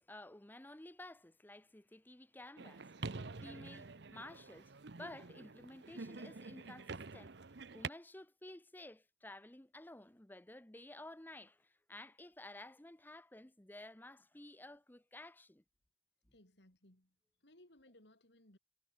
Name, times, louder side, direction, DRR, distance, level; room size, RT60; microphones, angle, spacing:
voice 1, 0.0-7.4 7.7-15.6, left 1 dB, 10° left, 0.8 m, -53 dB
sound 1, 2.6-7.9, right 4 dB, 65° right, 0.9 m, -47 dB
voice 2, 16.3-17.1 17.4-18.6, left 1 dB, 65° left, 4.5 m, -64 dB
head